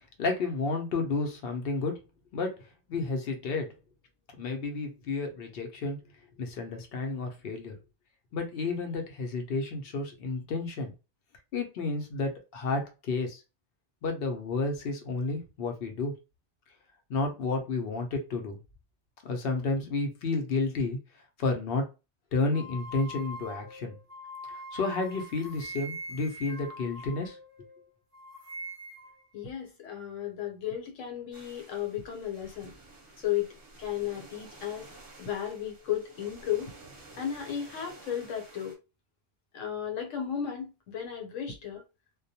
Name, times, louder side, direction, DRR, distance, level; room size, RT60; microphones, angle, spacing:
voice 1, 0.2-2.0 2.3-2.6 2.9-3.7 4.4-6.0 6.4-7.8 8.3-10.9 11.5-13.4 14.0-16.1 17.1-18.6 19.2-21.0 21.4-21.9 22.3-24.0 24.5-27.4, left 3 dB, 60° left, 0.7 m, -31 dB
sound 1, 22.5-27.8 28.1-29.2, equal, 45° right, 0.5 m, -43 dB
voice 2, 29.3-32.7 33.2-34.8 35.2-36.7 37.2-38.8 39.5-41.8, left 10 dB, 80° left, 1.1 m, -34 dB
sound 2, 31.3-38.7, right 2 dB, 20° right, 0.8 m, -52 dB
2.3 x 2.1 x 2.7 m
omnidirectional pair, 1.3 m